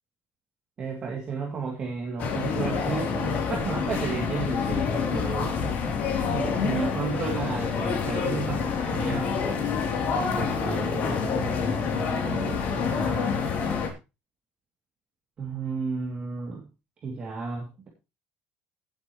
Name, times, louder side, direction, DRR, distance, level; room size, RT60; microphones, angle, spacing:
voice 1, 0.8-5.6 6.2-9.3 10.4-13.4 15.4-16.7 17.0-17.9, right 4 dB, 25° right, -2 dB, 2.8 m, -33 dB
sound 1, 2.2-13.9, left 5 dB, 45° left, 3.2 m, -27 dB
17.5 x 8.4 x 3.2 m, 0.28 s
cardioid pair, 180°, 4 cm